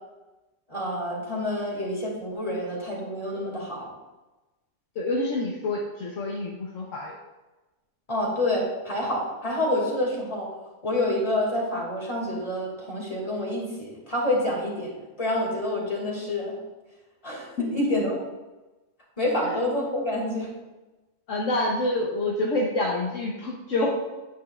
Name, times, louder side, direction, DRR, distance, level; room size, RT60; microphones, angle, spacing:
voice 1, 0.7-3.9 8.1-10.5 10.8-14.9 15.2-16.6 17.2-18.2 19.2-20.5, left 1 dB, 25° left, -2 dB, 2.5 m, -28 dB
voice 2, 5.0-7.2 17.6-17.9 19.4-19.6 21.3-23.9, left 2 dB, 65° left, -1 dB, 1.3 m, -27 dB
9.2 x 9.2 x 2.5 m, 1.1 s
omnidirectional pair, 1.4 m